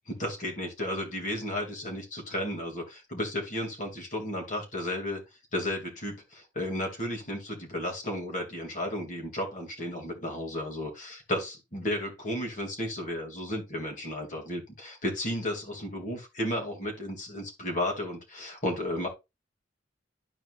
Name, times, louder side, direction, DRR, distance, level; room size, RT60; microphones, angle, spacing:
voice 1, 0.1-5.2 5.5-19.1, left 1 dB, 45° left, 0 dB, 2.8 m, -33 dB
12.5 x 4.4 x 2.6 m, 0.23 s
head